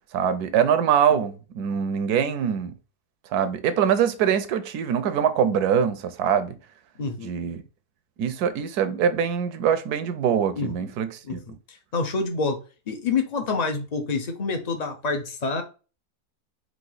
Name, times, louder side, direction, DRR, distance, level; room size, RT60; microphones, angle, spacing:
voice 1, 0.1-2.7 3.3-6.6 7.2-7.6 8.2-11.4, right 8 dB, 75° right, 1.2 m, -23 dB
voice 2, 7.0-7.3 10.6-10.7 11.2-12.6 12.9-15.6, left 4 dB, 40° left, 0.6 m, -27 dB
4.8 x 2.7 x 4.0 m
omnidirectional pair, 1.7 m